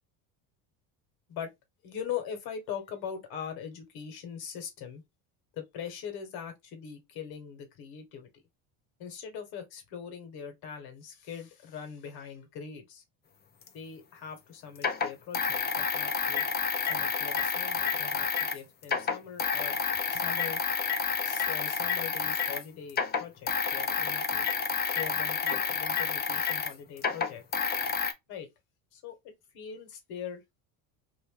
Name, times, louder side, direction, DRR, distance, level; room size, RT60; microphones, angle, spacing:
voice 1, 1.8-5.0 5.5-8.3 9.0-13.0 13.7-16.4 16.8-20.6 21.2-24.5 24.8-27.4 28.3-28.5 28.9-30.4, left 8 dB, 65° left, 1.6 m, -41 dB
sound 1, 13.7-13.8 14.8-18.6 18.8-22.6 22.9-28.1, left 6 dB, 25° left, 0.6 m, -29 dB
2.9 x 2.6 x 3.6 m
cardioid pair, 115°, 39 cm